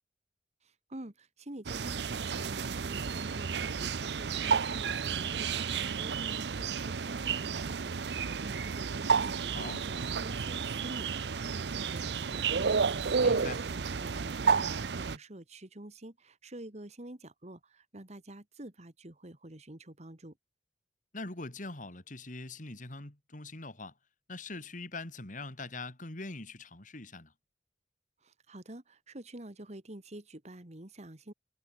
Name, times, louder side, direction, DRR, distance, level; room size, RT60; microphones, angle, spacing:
voice 1, 0.6-20.4 28.2-31.3, right 1 dB, 40° right, 2.0 m, -48 dB
sound 1, 1.7-15.2, right 5 dB, 75° right, 0.6 m, -31 dB
voice 2, 13.2-13.6 21.1-23.9 24.3-27.3, left 2 dB, 45° left, 2.9 m, -42 dB
head